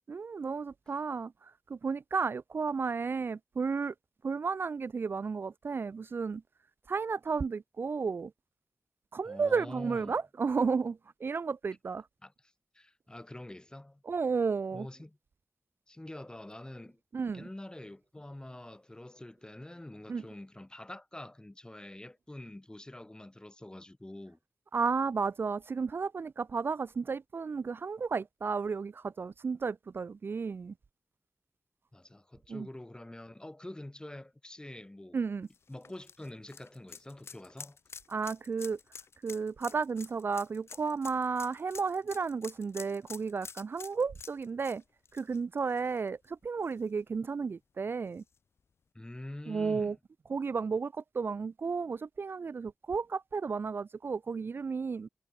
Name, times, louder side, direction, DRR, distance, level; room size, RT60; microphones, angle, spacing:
voice 1, 0.1-3.9 4.2-6.4 6.9-8.3 9.1-12.0 14.1-14.9 17.1-17.5 20.1-20.2 24.7-30.7 32.5-32.7 35.1-35.5 38.1-38.8 39.2-44.8 45.1-48.2 49.5-50.0 50.3-55.1, right 5 dB, 55° right, 0.3 m, -33 dB
voice 2, 9.2-10.2 12.2-14.0 14.7-15.2 15.9-17.0 17.3-24.4 31.9-35.2 35.7-37.8 48.9-50.0, left 1 dB, 20° left, 1.5 m, -46 dB
sound 1, 35.5-46.3 46.6-46.7 48.2-48.3, left 5 dB, 75° left, 1.1 m, -49 dB
cardioid pair, 45°, 4 cm